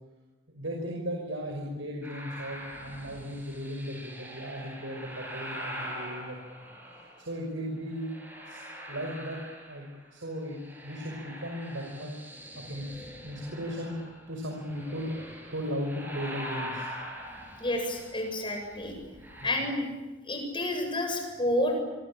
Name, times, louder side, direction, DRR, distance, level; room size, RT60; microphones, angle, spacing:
voice 1, 0.5-6.7 7.2-8.2 8.5-8.6 8.9-9.4 9.7-9.9 10.1-10.6 10.8-13.9 14.3-16.9 19.4-19.5, equal, 85° right, 0 dB, 5.8 m, -36 dB
sound 1, 2.0-7.3 7.9-10.1 10.4-19.5, equal, 10° right, 7.1 m, -43 dB
voice 2, 17.6-18.9 19.4-19.9 20.3-21.8, left 1 dB, 25° left, 4 dB, 7.8 m, -29 dB
27.0 x 24.0 x 8.8 m, 1.1 s
head